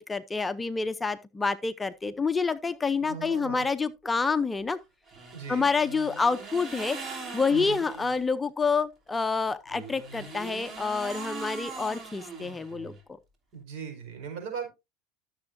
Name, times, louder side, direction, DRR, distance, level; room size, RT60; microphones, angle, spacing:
voice 1, 0.0-4.8 5.5-12.9, left 4 dB, 15° left, 0.6 m, -28 dB
voice 2, 3.0-3.6 5.3-5.7 7.5-7.8 13.5-14.7, right 6 dB, 65° right, 4.8 m, -38 dB
sound 1, 5.1-8.2 9.7-13.0, right 4 dB, 35° right, 3.2 m, -41 dB
13.5 x 7.1 x 2.6 m
hypercardioid pair, 95°, 0 cm